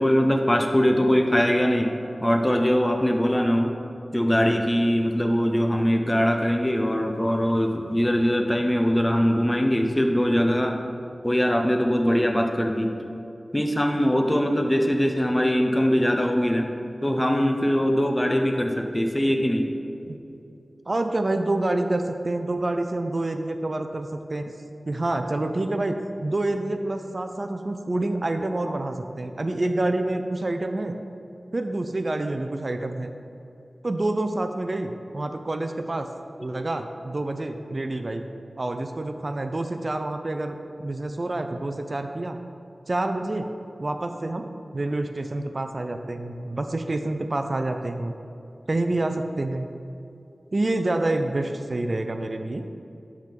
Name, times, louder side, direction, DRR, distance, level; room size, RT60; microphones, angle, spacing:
voice 1, 0.0-1.9 2.2-3.7 4.1-10.8 11.2-12.9 13.5-16.7 17.0-19.7, equal, 15° left, 3 dB, 0.8 m, -22 dB
voice 2, 20.9-24.5 24.9-31.0 31.5-33.1 33.8-36.1 36.4-38.2 38.6-42.4 42.9-43.5 43.8-48.1 48.7-49.7 50.5-52.7, right 2 dB, 50° right, 7 dB, 0.4 m, -27 dB
10.5 x 3.6 x 5.8 m, 2.7 s
wide cardioid pair, 55°, 0 cm